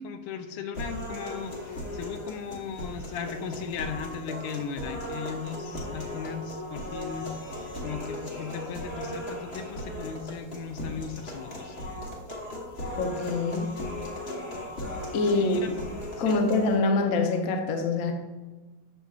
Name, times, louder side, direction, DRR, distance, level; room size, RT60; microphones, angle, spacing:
voice 1, 0.0-7.3 7.8-11.8 15.2-15.8 16.2-16.4, left 6 dB, 85° left, 8 dB, 1.5 m, -37 dB
sound 1, 0.7-16.7, left 1 dB, 40° left, 1.0 m, -37 dB
voice 2, 12.9-13.7 15.1-15.8 16.2-18.1, left 3 dB, 65° left, 3 dB, 0.8 m, -25 dB
6.7 x 6.1 x 2.4 m, 1.2 s
omnidirectional pair, 2.3 m